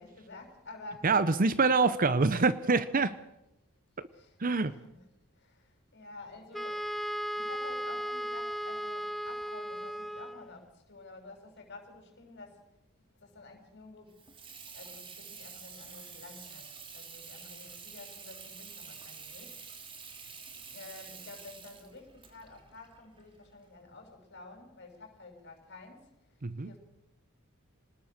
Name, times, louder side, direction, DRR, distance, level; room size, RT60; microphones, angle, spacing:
voice 1, 0.0-1.1 2.6-2.8 3.1-3.2 4.1-5.1 5.3-6.9 7.3-12.7 13.2-14.2 14.7-19.6 20.5-26.1 26.6-26.8, left 3 dB, 55° left, 6.2 m, -50 dB
voice 2, 1.0-3.1 4.4-4.7 26.4-26.7, right 4 dB, 40° right, 0.8 m, -25 dB
Wind instrument woodwind instrument, 6.5-10.6, equal, ahead, 0.7 m, -36 dB
Water tap faucet / Sink (filling or washing), 14.1-23.7, right 5 dB, 25° right, 2.8 m, -48 dB
25.5 x 19.5 x 6.7 m
head